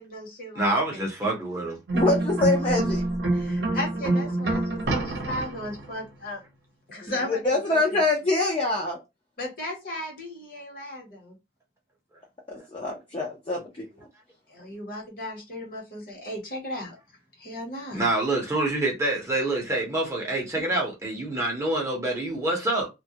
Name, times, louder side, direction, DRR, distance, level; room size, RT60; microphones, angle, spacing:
voice 1, 0.0-1.1 3.3-6.4 6.9-7.8 9.4-11.4 14.5-17.0 17.4-18.1, left 1 dB, 50° left, 1.0 m, -36 dB
voice 2, 0.5-1.8 7.0-7.1 17.9-22.9, right 2 dB, 15° right, 0.6 m, -26 dB
voice 3, 1.9-3.0 7.0-9.0 12.5-13.9, left 2 dB, 30° left, 0.5 m, -25 dB
sound 1, 1.9-5.9, right 2 dB, 65° right, 0.7 m, -26 dB
2.2 x 2.1 x 2.7 m
head